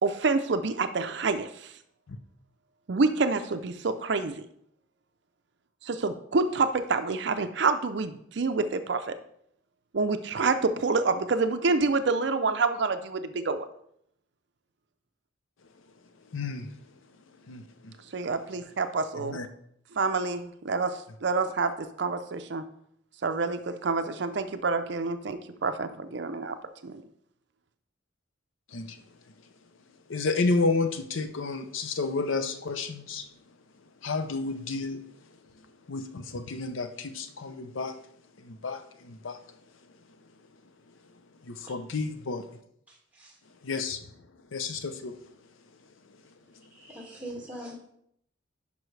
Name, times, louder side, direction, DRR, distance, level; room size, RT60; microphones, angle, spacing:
voice 1, 0.0-1.7 2.9-4.4 5.8-9.2 9.9-13.6 18.1-19.4 19.9-22.6 23.2-26.5 26.8-27.0, right 4 dB, 60° right, 9 dB, 0.5 m, -27 dB
voice 2, 16.3-16.7 17.4-17.9 19.2-19.5 28.7-29.0 30.1-33.3 34.0-35.0 35.9-38.0 38.4-39.4 41.4-42.5 43.6-44.1 44.5-45.2, left 3 dB, 90° left, 10 dB, 0.7 m, -31 dB
voice 3, 42.9-43.4 46.7-47.7, right 1 dB, 10° right, -2 dB, 2.0 m, -42 dB
11.0 x 5.5 x 3.3 m, 0.71 s
head